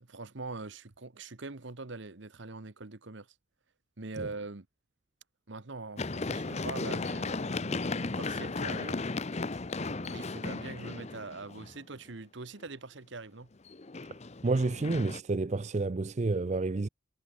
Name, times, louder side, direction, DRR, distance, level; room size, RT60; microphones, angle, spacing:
voice 1, 0.0-3.3 4.0-4.7 5.5-9.0 9.8-13.5, right 3 dB, 60° right, 1.1 m, -43 dB
Run, 6.0-11.8 13.7-15.2, left 3 dB, 30° left, 0.7 m, -35 dB
voice 2, 14.4-16.9, right 3 dB, 35° right, 0.4 m, -29 dB
head